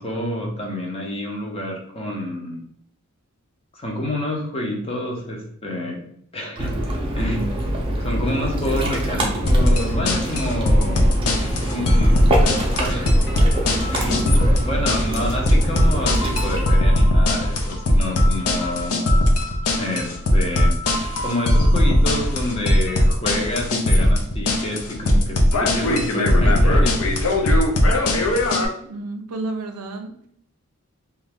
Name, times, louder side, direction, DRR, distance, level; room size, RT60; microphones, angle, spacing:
voice 1, 0.0-2.6 3.7-6.0 6.3-6.7 7.1-7.5 8.0-11.2 11.7-12.2 12.8-13.2 13.9-19.2 19.8-20.7 21.2-27.2, left 1 dB, 25° left, 0 dB, 0.6 m, -28 dB
Ocean, 6.6-16.7, right 1 dB, 25° right, 0.5 m, -25 dB
sound 1, 9.5-28.7, left 1 dB, 75° left, 0.5 m, -19 dB
voice 2, 11.2-12.0 28.8-30.1, right 2 dB, 85° right, 5 dB, 0.5 m, -33 dB
2.5 x 2.3 x 3.4 m, 0.67 s
head